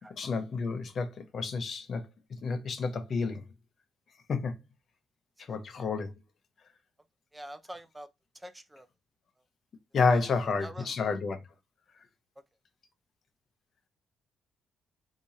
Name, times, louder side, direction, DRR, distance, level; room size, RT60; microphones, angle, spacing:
voice 1, 0.1-2.0 2.4-3.4 4.3-4.5 5.5-6.1 9.9-11.4, left 4 dB, 50° left, 0.9 m, -30 dB
voice 2, 7.3-8.1 8.3-8.9 10.1-10.9, right 1 dB, 10° right, 0.6 m, -46 dB
3.6 x 2.9 x 2.6 m
cardioid pair, 90°, 0 cm